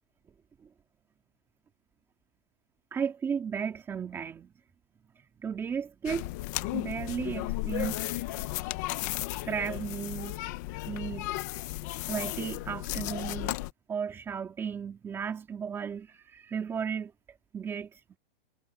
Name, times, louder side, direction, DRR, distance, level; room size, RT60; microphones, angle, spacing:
voice 1, 2.9-4.5 5.2-6.3 6.7-8.0 9.4-10.4 10.9-11.3 12.1-13.6 13.9-17.1 17.5-18.2, right 7 dB, 10° right, 2.6 m, -34 dB
sound 1, 6.0-13.7, left 17 dB, 20° left, 0.7 m, -34 dB
hypercardioid pair, 175°, 29 cm